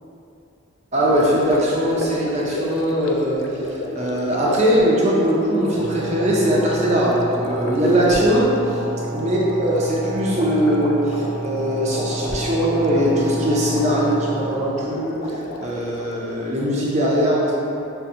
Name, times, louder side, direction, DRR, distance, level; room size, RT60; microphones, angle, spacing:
voice 1, 0.9-3.4 3.7-8.5 9.1-17.5, right 1 dB, 30° right, -5 dB, 0.5 m, -20 dB
Gurgling, 1.0-16.2, left 2 dB, 70° left, 0.4 m, -32 dB
sound 1, 5.7-14.5, right 1 dB, 75° right, 1.1 m, -29 dB
6.5 x 2.2 x 2.7 m, 2.7 s
head